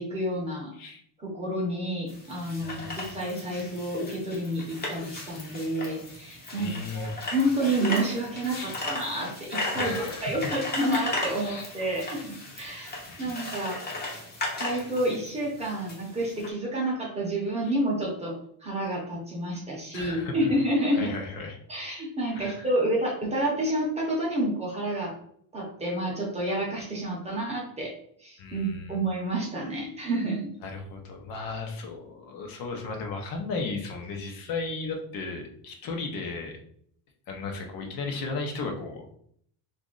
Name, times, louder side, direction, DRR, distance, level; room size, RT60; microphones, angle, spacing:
voice 1, 0.0-0.7 1.2-12.9 13.2-13.8 14.5-18.3 18.6-21.1 21.7-25.1 25.5-27.9 28.2-30.5, right 1 dB, 15° right, -3 dB, 0.7 m, -29 dB
sound 1, 2.1-16.5, left 2 dB, 25° left, 0.7 m, -36 dB
voice 2, 2.6-3.1 6.6-7.2 8.5-8.8 9.7-10.3 11.4-11.6 13.2-13.3 17.6-17.7 19.9-20.3 21.0-21.6 22.3-22.7 28.4-29.0 30.6-36.5 37.3-39.2, left 3 dB, 55° left, 2 dB, 0.8 m, -35 dB
3.0 x 2.5 x 3.8 m, 0.65 s
cardioid pair, 175°, 42 cm